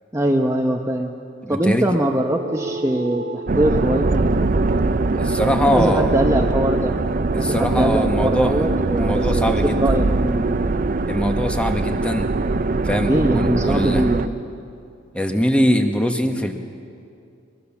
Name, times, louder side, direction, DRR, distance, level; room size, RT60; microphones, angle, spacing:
voice 1, 0.1-1.1 1.5-4.2 5.6-6.9 7.4-9.5 9.8-10.6 13.1-14.4, right 1 dB, 15° right, 2 dB, 0.9 m, -22 dB
voice 2, 1.4-1.9 5.1-6.2 7.3-8.7 9.0-10.0 11.1-12.3 12.8-14.0 15.1-16.5, equal, 5° left, 5 dB, 1.4 m, -22 dB
sound 1, 2.1-6.9, right 2 dB, 65° right, 2.2 m, -36 dB
sound 2, 3.5-14.3, right 3 dB, 45° right, 0.6 m, -21 dB
22.0 x 22.0 x 7.2 m, 2.5 s
head